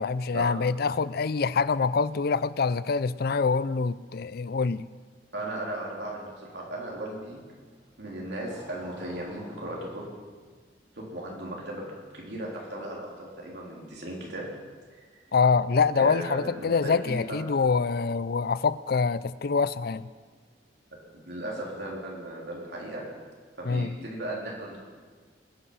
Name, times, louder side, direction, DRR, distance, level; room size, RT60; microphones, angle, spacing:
voice 1, 0.0-4.8 15.3-20.1 23.6-24.0, left 5 dB, 60° left, 17 dB, 0.5 m, -25 dB
Motorcycle, 5.3-13.3, equal, 25° right, 2.8 m, -53 dB
voice 2, 5.3-7.4 8.0-10.1 11.0-11.8 12.1-14.5 15.9-17.4 21.1-23.1 23.6-24.8, right 1 dB, 65° right, -3 dB, 3.8 m, -36 dB
21.0 x 10.0 x 5.7 m, 1.5 s
head